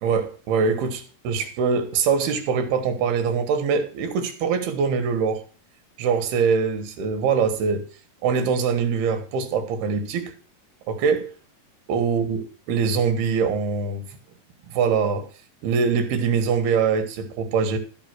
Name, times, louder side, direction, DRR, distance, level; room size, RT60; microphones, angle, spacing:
voice 1, 0.0-5.4 6.0-7.8 8.2-10.3 10.9-11.3 11.9-14.0 14.7-15.3 15.6-17.8, right 5 dB, 80° right, 3.4 m, -23 dB
13.5 x 5.7 x 6.0 m
omnidirectional pair, 4.5 m